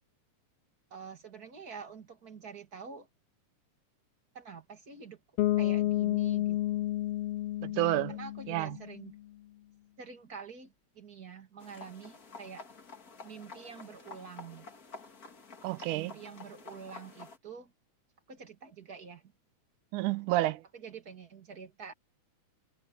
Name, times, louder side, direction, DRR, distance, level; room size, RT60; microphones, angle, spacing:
voice 1, 0.9-3.1 4.3-5.2 5.6-6.9 8.1-9.2 10.0-12.7 13.2-14.7 15.9-17.7 18.3-19.3 20.7-21.9, right 6 dB, 30° right, 2.7 m, -47 dB
Bass guitar, 5.4-9.1, left 15 dB, 90° left, 1.3 m, -31 dB
voice 2, 7.6-8.2 8.5-8.8 15.6-16.1 19.9-20.6, right 16 dB, 85° right, 2.3 m, -30 dB
sound 1, 11.6-17.4, left 4 dB, 35° left, 2.1 m, -50 dB
omnidirectional pair, 3.5 m